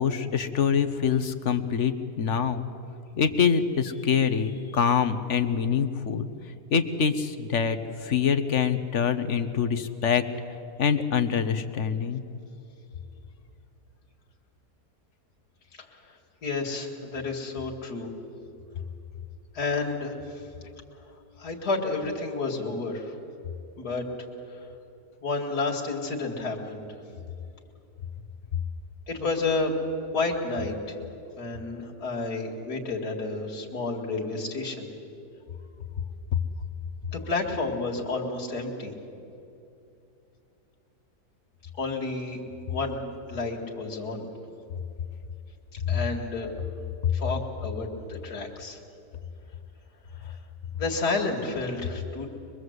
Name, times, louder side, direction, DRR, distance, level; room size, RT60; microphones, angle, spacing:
voice 1, 0.0-2.7 3.1-6.3 6.7-10.2 10.8-12.2, left 7 dB, 50° left, 10 dB, 1.3 m, -25 dB
voice 2, 16.4-18.1 19.5-20.2 21.4-23.1 23.8-24.0 25.2-26.8 29.1-29.8 30.1-31.0 31.4-34.9 37.1-38.9 41.8-42.4 42.7-43.0 43.3-44.3 45.9-46.5 47.1-48.8 50.3-50.4 50.8-52.3, left 3 dB, 75° left, -1 dB, 2.6 m, -30 dB
24.0 x 22.0 x 8.0 m, 2.7 s
omnidirectional pair, 1.7 m